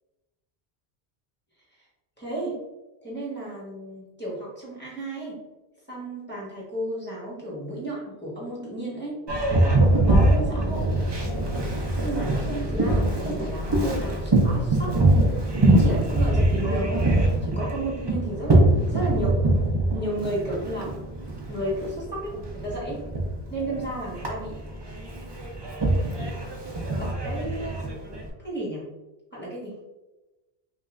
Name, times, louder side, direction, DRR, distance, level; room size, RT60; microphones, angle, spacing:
voice 1, 2.2-2.6 3.0-5.4 5.9-9.2 10.1-10.8 12.0-14.9 15.7-17.1 17.4-19.4 19.9-20.9 21.5-23.0 23.5-24.6 27.0-27.9 28.4-28.8 29.3-29.7, right 1 dB, 10° left, -6 dB, 1.2 m, -33 dB
Boat Water vehicle, 9.3-28.3, right 1 dB, 30° right, 0.6 m, -23 dB
5.2 x 2.5 x 2.4 m, 1.1 s
omnidirectional pair, 1.1 m